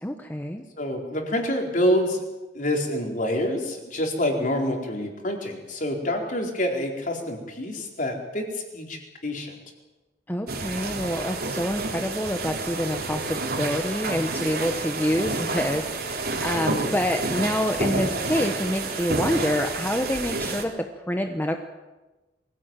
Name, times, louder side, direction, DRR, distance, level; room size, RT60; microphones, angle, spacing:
voice 1, 0.0-0.6 10.3-21.6, left 1 dB, 10° left, 5 dB, 1.1 m, -27 dB
voice 2, 0.8-2.2 2.5-9.5 16.7-17.0, left 1 dB, 45° left, 2 dB, 4.2 m, -27 dB
sound 1, 10.5-20.6, right 3 dB, 55° right, 3.5 m, -29 dB
23.0 x 16.5 x 9.0 m, 1.1 s
head